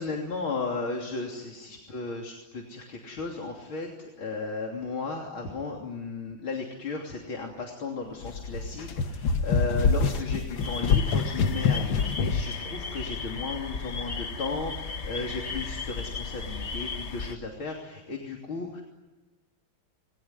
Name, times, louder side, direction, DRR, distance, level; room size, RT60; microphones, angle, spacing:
voice 1, 0.0-18.8, left 3 dB, 90° left, 1 dB, 3.9 m, -35 dB
sound 1, 8.2-12.6, left 5 dB, 75° left, 2.1 m, -26 dB
sound 2, 10.6-17.3, left 4 dB, 35° left, 1.5 m, -35 dB
28.5 x 21.5 x 9.6 m, 1.2 s
omnidirectional pair, 2.2 m